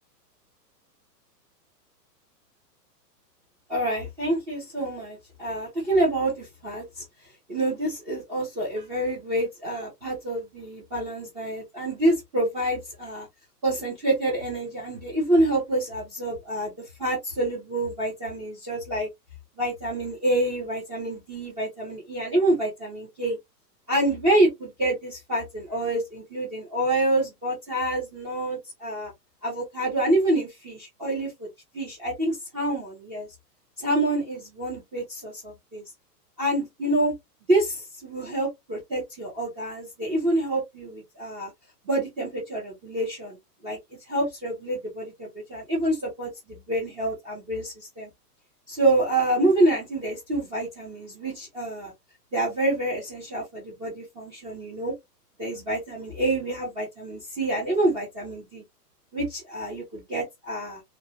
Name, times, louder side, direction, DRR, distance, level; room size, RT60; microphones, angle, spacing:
voice 1, 3.7-7.0 7.5-13.3 13.6-16.7 17.0-19.1 19.6-23.4 23.9-29.1 29.4-31.5 31.7-33.3 33.8-35.8 36.4-37.1 37.5-41.5 41.8-43.4 43.6-43.8 44.1-48.1 48.7-51.9 52.3-54.9 55.4-58.6 59.1-60.8, right 1 dB, 10° right, 0.5 m, -27 dB
2.6 x 2.0 x 2.7 m
hypercardioid pair, 150°, 49 cm